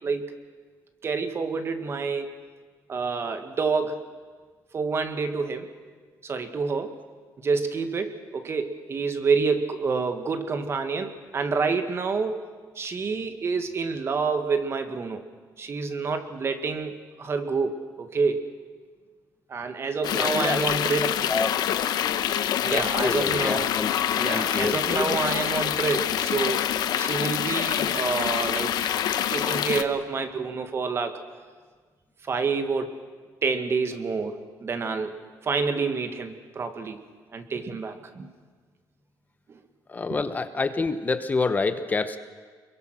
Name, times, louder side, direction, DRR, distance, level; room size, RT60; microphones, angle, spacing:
voice 1, 1.0-2.3 2.9-4.0 4.7-5.7 6.2-7.0 7.4-12.4 12.7-15.2 15.6-18.5 19.5-21.2 22.6-23.7 24.2-26.7 27.0-28.7 29.3-31.2 32.2-33.0 33.4-35.1 35.4-37.0 37.3-38.3 39.5-39.6, right 4 dB, 40° right, 8 dB, 1.7 m, -28 dB
sound 1, 20.0-29.8, left 10 dB, 80° left, 1.0 m, -26 dB
voice 2, 20.1-20.6 21.3-21.5 22.7-23.9 24.3-25.2 39.9-42.2, left 3 dB, 25° left, 10 dB, 0.9 m, -27 dB
26.5 x 22.5 x 6.2 m, 1.5 s
cardioid pair, 135°, 7 cm